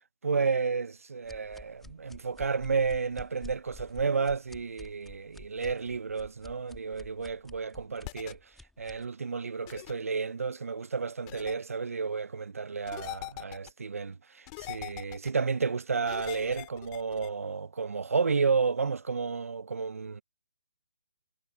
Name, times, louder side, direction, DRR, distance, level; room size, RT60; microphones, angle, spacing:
voice 1, 0.2-8.4 8.8-20.2, right 5 dB, 75° right, 1.1 m, -31 dB
sound 1, 1.2-9.1, left 2 dB, 5° left, 3.2 m, -50 dB
sound 2, 8.0-8.3 9.7-9.9 11.3-11.5 12.9-13.7 14.5-15.3 16.1-17.3, left 28 dB, 25° left, 2.6 m, -42 dB
figure-of-eight pair, 145°, 8 cm